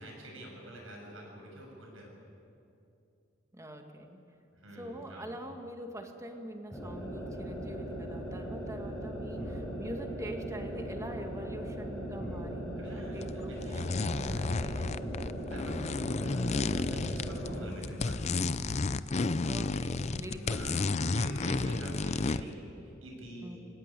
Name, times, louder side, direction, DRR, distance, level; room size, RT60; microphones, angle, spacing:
voice 1, 0.0-2.1 4.5-5.3 12.8-14.9 15.5-18.4 20.5-23.6, right 1 dB, 75° right, 0 dB, 6.9 m, -47 dB
voice 2, 3.5-4.2 4.8-13.7 14.1-14.5 17.5-17.8 19.4-21.0 21.8-22.2 23.4-23.6, right 1 dB, 15° right, 4 dB, 1.9 m, -44 dB
sound 1, 6.7-17.8, equal, 5° left, 5.1 m, -39 dB
sound 2, 13.2-13.3 13.6-17.6 17.8-22.5, left 3 dB, 35° left, 0.5 m, -32 dB
sound 3, 17.0-19.4 19.7-22.3, equal, 75° left, 3.1 m, -44 dB
24.0 x 17.5 x 10.0 m, 2.7 s
head